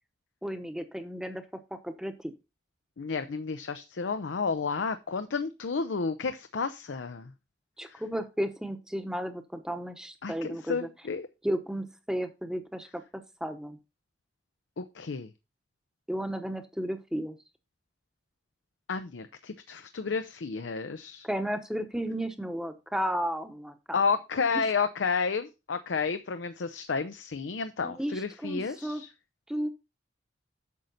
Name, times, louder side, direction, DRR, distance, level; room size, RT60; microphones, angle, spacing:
voice 1, 0.4-1.4 1.7-2.3 7.8-10.9 11.4-13.8 16.1-17.4 21.2-24.0 24.5-24.7 27.8-29.0 29.5-29.7, equal, 5° right, 8 dB, 0.9 m, -33 dB
voice 2, 3.0-7.3 7.8-8.0 10.2-11.3 14.8-15.3 18.9-21.3 23.9-29.1, left 5 dB, 80° left, 10 dB, 0.6 m, -31 dB
8.5 x 6.4 x 4.0 m, 0.27 s
head